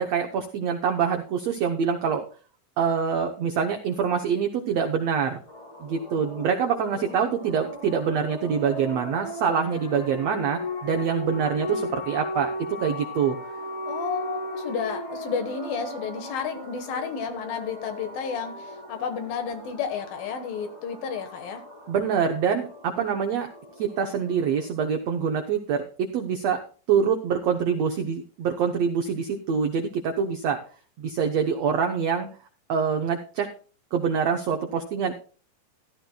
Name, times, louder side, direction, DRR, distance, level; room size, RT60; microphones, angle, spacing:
voice 1, 0.0-2.3 2.8-5.4 5.8-12.5 12.8-13.4 21.9-23.5 23.8-26.6 26.9-30.6 31.0-32.3 32.7-33.5 33.9-35.1, right 7 dB, 85° right, 4 dB, 1.4 m, -25 dB
sound 1, 5.5-24.9, left 1 dB, 25° left, 1.5 m, -37 dB
voice 2, 13.9-21.6 23.0-23.1, left 6 dB, 70° left, 7 dB, 3.1 m, -32 dB
15.0 x 13.0 x 2.3 m, 0.39 s
omnidirectional pair, 4.4 m